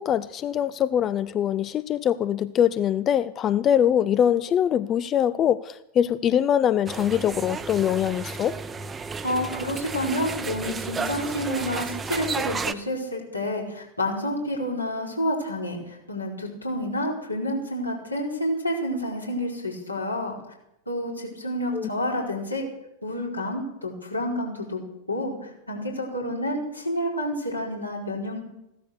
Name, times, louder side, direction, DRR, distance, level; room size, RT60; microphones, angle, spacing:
voice 1, 0.0-8.6 21.7-21.9, left 9 dB, 30° left, 0.5 m, -23 dB
sound 1, 6.9-12.7, right 5 dB, 15° right, 0.9 m, -32 dB
voice 2, 9.2-20.4 20.9-22.7 23.0-24.8 25.1-28.4, left 1 dB, 85° left, 4.7 m, -29 dB
16.0 x 12.5 x 6.6 m
figure-of-eight pair, 90°, 0 cm